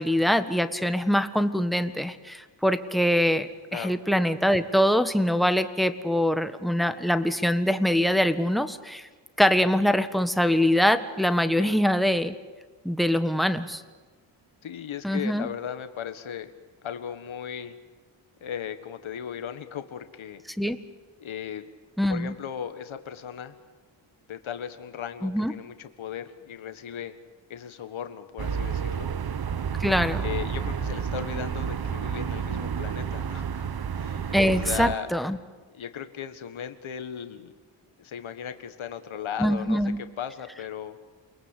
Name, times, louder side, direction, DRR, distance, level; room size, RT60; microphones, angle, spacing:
voice 1, 0.0-9.1 9.4-12.3 12.8-13.8 15.0-15.5 20.6-20.8 22.0-22.3 25.2-25.5 29.8-30.2 34.3-35.4 39.4-40.0, equal, ahead, 10 dB, 1.5 m, -23 dB
voice 2, 14.6-16.5 16.8-17.8 18.4-20.4 21.2-21.6 22.1-23.6 24.3-27.1 27.5-29.1 30.2-33.7 34.0-35.1 35.7-37.5 38.0-41.0, left 8 dB, 75° left, 9 dB, 1.7 m, -37 dB
sound 1, 28.4-35.0, right 7 dB, 50° right, 1.1 m, -30 dB
29.0 x 21.5 x 8.4 m, 1.3 s
cardioid pair, 90°, 48 cm